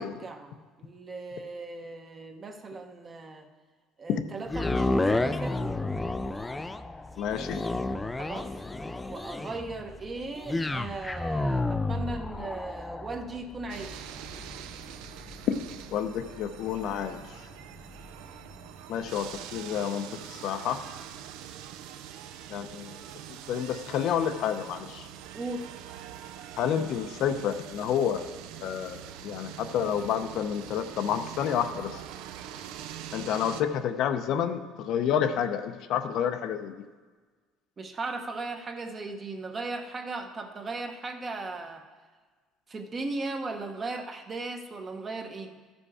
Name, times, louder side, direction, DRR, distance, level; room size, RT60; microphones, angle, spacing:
voice 1, 0.0-3.5 4.0-5.8 8.2-8.5 9.1-14.1 25.3-25.7 37.8-41.8 42.7-45.6, right 3 dB, 30° right, 5 dB, 0.9 m, -37 dB
sound 1, 4.5-18.7 19.2-19.3, left 2 dB, 10° left, 0.3 m, -32 dB
voice 2, 7.2-7.6 15.5-15.6 15.9-17.2 18.9-20.8 22.5-22.9 23.3-25.1 26.6-28.3 28.6-32.0 33.1-36.7, left 8 dB, 60° left, 8 dB, 0.6 m, -29 dB
sound 2, 13.7-33.6, right 10 dB, 80° right, 0.5 m, -44 dB
13.5 x 5.2 x 4.8 m, 1.4 s
cardioid pair, 125°, 0 cm